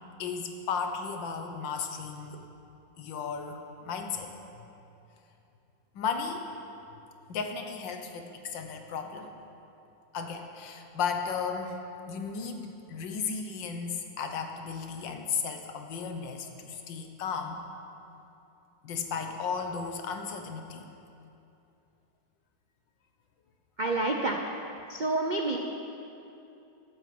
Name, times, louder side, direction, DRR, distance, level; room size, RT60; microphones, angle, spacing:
voice 1, 0.2-2.4 3.0-4.6 5.9-6.5 7.3-9.3 10.1-17.6 18.8-20.8, left 6 dB, 70° left, 5 dB, 1.7 m, -35 dB
voice 2, 23.8-24.4 24.9-25.6, right 2 dB, 80° right, 1 dB, 0.4 m, -28 dB
13.5 x 8.5 x 7.7 m, 2.8 s
omnidirectional pair, 2.1 m